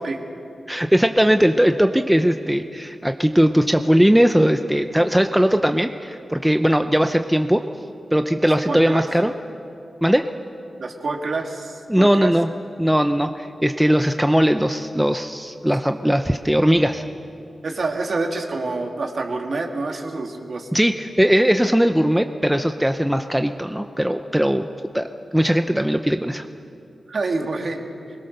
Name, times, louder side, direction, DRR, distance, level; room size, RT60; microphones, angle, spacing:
voice 1, 0.7-7.6 8.1-9.3 10.0-10.3 11.9-12.5 12.8-17.0 20.7-24.6 24.9-26.5, equal, 5° right, 7 dB, 0.6 m, -19 dB
voice 2, 8.7-9.0 10.8-12.3 17.6-20.7 27.1-27.8, right 3 dB, 55° right, 2 dB, 2.3 m, -27 dB
24.0 x 21.0 x 6.7 m, 2.5 s
wide cardioid pair, 135°, 0 cm